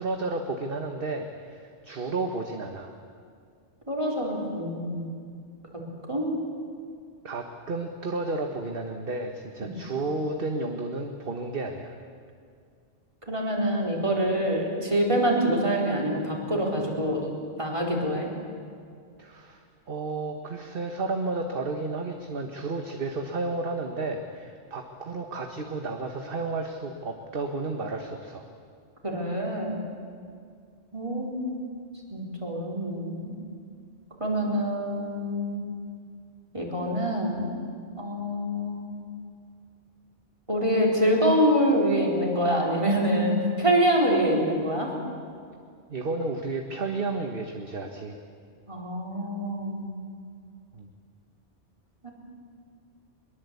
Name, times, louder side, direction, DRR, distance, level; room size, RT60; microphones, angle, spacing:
voice 1, 0.0-2.9 7.2-11.9 19.2-28.4 45.9-48.2 50.7-50.9, right 3 dB, 50° right, 4 dB, 1.5 m, -32 dB
voice 2, 3.9-5.1 6.1-6.4 9.6-9.7 13.3-17.3 17.6-18.3 29.0-29.8 30.9-31.6 32.1-33.3 34.2-35.6 36.5-37.5 38.0-38.9 40.5-44.9 48.7-49.9 52.0-52.1, equal, 25° right, -2 dB, 4.3 m, -25 dB
23.0 x 22.0 x 8.4 m, 2.2 s
omnidirectional pair, 1.2 m